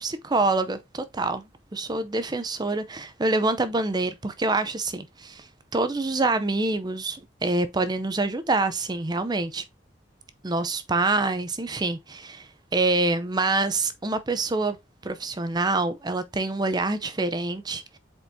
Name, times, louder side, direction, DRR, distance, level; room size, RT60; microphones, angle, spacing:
voice 1, 0.0-1.4 1.7-5.5 5.7-9.6 10.4-14.8 15.0-18.0, right 3 dB, 25° right, 0.6 m, -26 dB
7.9 x 4.4 x 2.7 m
head